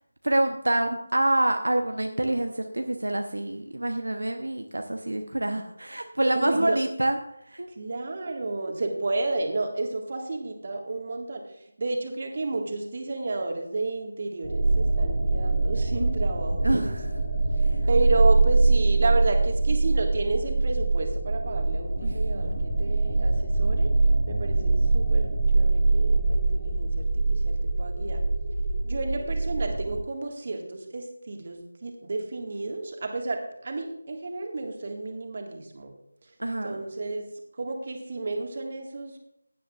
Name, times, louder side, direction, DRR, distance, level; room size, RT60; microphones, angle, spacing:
voice 1, 0.2-7.2 7.5-7.7 16.6-17.1 17.6-17.8 22.0-22.6 36.4-36.8, right 1 dB, 65° right, 5 dB, 0.9 m, -27 dB
voice 2, 6.2-6.8 7.7-17.0 17.9-23.9 24.3-28.2 28.8-35.9 36.2-36.3 36.6-39.2, right 2 dB, 40° right, 3 dB, 1.8 m, -31 dB
sound 1, 14.4-30.0, right 3 dB, 80° left, 5.2 m, -23 dB
16.0 x 10.5 x 2.5 m, 0.78 s
figure-of-eight pair, 160°, 0 cm